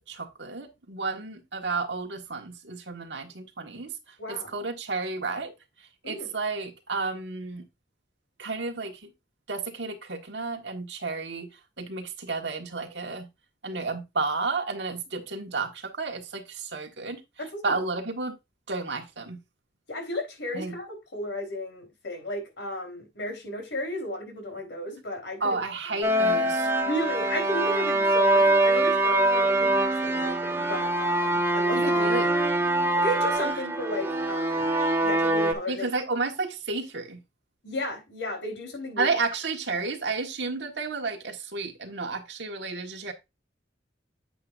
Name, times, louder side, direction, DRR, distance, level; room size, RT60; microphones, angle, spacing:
voice 1, 0.1-3.9 4.3-5.5 6.0-7.6 8.4-9.1 9.5-11.5 11.8-13.3 13.6-17.2 17.6-18.3 18.7-19.4 20.5-20.7 25.4-26.7 31.7-32.3 35.7-37.2 39.0-43.1, right 3 dB, 70° right, 1.6 m, -32 dB
voice 2, 4.2-4.5 6.0-6.3 17.4-17.8 19.9-25.6 25.9-26.1 26.8-32.2 33.0-34.7 35.0-35.9 37.6-39.1, left 1 dB, 85° left, 3.8 m, -34 dB
sound 1, 26.0-35.5, right 1 dB, 15° right, 1.1 m, -24 dB
8.6 x 7.8 x 2.5 m
head